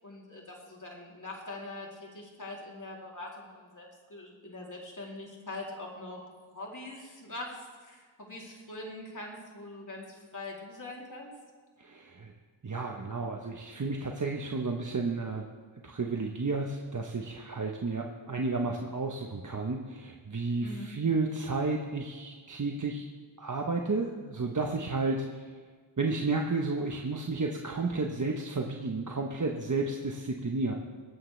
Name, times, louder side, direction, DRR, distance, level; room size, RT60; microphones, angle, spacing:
voice 1, 0.0-6.2 6.5-11.3 20.6-20.9, left 2 dB, 40° left, -2 dB, 3.2 m, -43 dB
voice 2, 11.8-12.3 12.6-15.5 15.8-23.0 23.4-25.5 26.0-30.7, right 3 dB, 40° right, 1 dB, 1.1 m, -32 dB
24.0 x 8.7 x 3.3 m, 1.5 s
wide cardioid pair, 65°, 48 cm